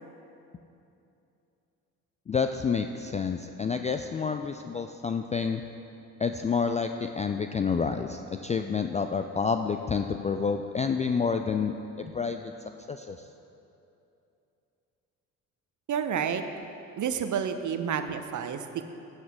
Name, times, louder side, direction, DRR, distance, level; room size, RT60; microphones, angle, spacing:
voice 1, 2.3-5.6 6.2-12.4 12.9-13.2, left 5 dB, 15° left, 7 dB, 0.3 m, -29 dB
voice 2, 15.9-16.4 16.9-18.8, right 7 dB, 40° right, 9 dB, 0.9 m, -30 dB
16.5 x 8.1 x 3.6 m, 2.8 s
figure-of-eight pair, 50°, 45 cm